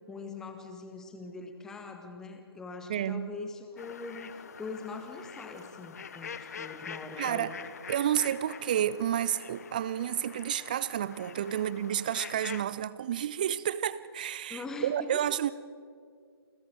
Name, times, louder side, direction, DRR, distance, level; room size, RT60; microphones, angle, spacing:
voice 1, 0.1-7.6 14.5-15.2, left 3 dB, 5° left, 6 dB, 0.8 m, -42 dB
voice 2, 2.9-3.3 7.2-7.5 7.9-15.5, right 10 dB, 20° right, 18 dB, 0.4 m, -30 dB
sound 1, 3.8-12.6, left 6 dB, 40° left, 0.7 m, -45 dB
29.0 x 25.5 x 3.7 m, 2.1 s
figure-of-eight pair, 145°, 13 cm